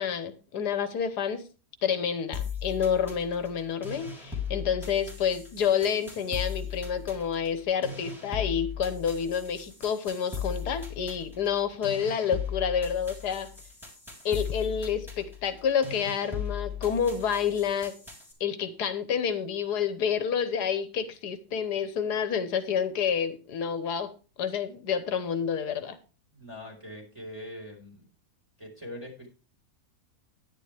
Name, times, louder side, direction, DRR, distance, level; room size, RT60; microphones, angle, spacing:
voice 1, 0.0-1.4 1.8-13.5 14.2-17.9 18.4-24.1 24.4-26.0, left 7 dB, 85° left, 11 dB, 1.6 m, -29 dB
sound 1, 2.3-18.3, left 7 dB, ahead, 3.6 m, -38 dB
voice 2, 26.3-28.0 28.6-29.3, left 1 dB, 20° right, -1 dB, 4.3 m, -42 dB
10.5 x 10.0 x 3.4 m, 0.34 s
omnidirectional pair, 1.7 m